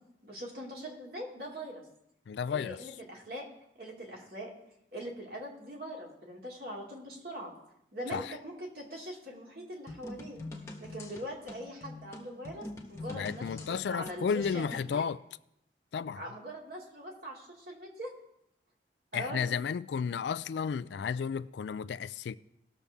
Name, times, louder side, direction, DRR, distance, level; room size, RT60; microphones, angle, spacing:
voice 1, 0.2-1.8 2.5-3.5 3.8-4.5 4.9-7.5 7.9-10.4 10.8-15.1 16.2-18.1 19.1-19.5, equal, 55° right, 2.5 m, -42 dB
voice 2, 2.3-2.8 8.1-8.3 13.1-15.2 15.9-16.2 19.1-22.3, left 6 dB, 75° left, 0.3 m, -33 dB
sound 1, 9.9-14.9, left 2 dB, 15° left, 1.2 m, -45 dB
18.5 x 6.9 x 3.5 m
head